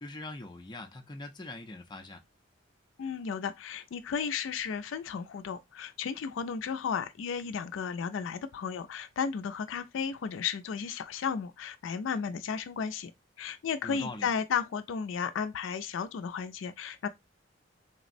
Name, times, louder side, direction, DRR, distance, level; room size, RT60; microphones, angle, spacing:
voice 1, 0.0-2.2 13.8-14.3, left 2 dB, 25° left, 0.5 m, -42 dB
voice 2, 3.0-13.1 13.4-17.1, left 6 dB, 90° left, 0.4 m, -34 dB
3.4 x 2.0 x 2.5 m
head